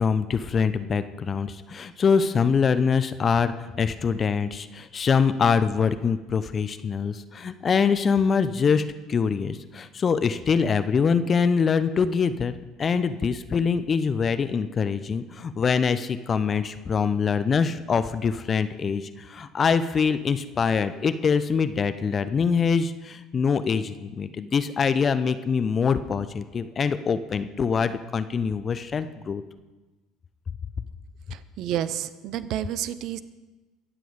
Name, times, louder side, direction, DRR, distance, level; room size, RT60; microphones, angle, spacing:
voice 1, 0.0-12.5 12.8-29.4, left 6 dB, 35° left, 12 dB, 0.7 m, -24 dB
voice 2, 31.3-33.2, right 11 dB, 55° right, 15 dB, 0.6 m, -30 dB
23.0 x 7.7 x 5.1 m, 1.2 s
figure-of-eight pair, 60°, 0 cm